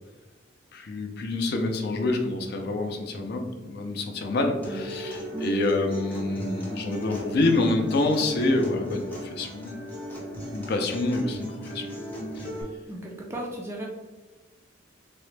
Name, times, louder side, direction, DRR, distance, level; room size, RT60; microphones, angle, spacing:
voice 1, 0.7-9.8 10.5-11.9 12.4-12.5, left 2 dB, 55° left, 4 dB, 0.4 m, -27 dB
Acoustic guitar, 4.6-12.6, equal, 10° left, 0.7 m, -37 dB
voice 2, 12.9-13.8, right 1 dB, 10° right, -3 dB, 0.3 m, -35 dB
3.6 x 2.1 x 3.2 m, 1.2 s
head